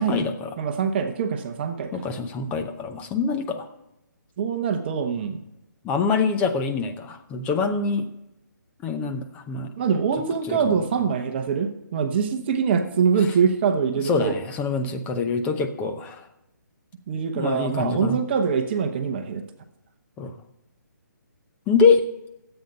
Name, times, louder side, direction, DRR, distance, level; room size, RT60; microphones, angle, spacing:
voice 1, 0.0-0.5 1.9-3.7 5.8-8.1 8.8-9.7 10.5-10.8 14.0-16.2 17.3-18.2 20.2-20.3 21.7-22.0, left 5 dB, 15° left, 6 dB, 0.8 m, -24 dB
voice 2, 0.6-2.0 4.4-5.4 9.8-14.4 17.1-19.4, right 6 dB, 35° right, 7 dB, 1.0 m, -24 dB
13.0 x 8.2 x 5.3 m, 0.89 s
hypercardioid pair, 150°, 10 cm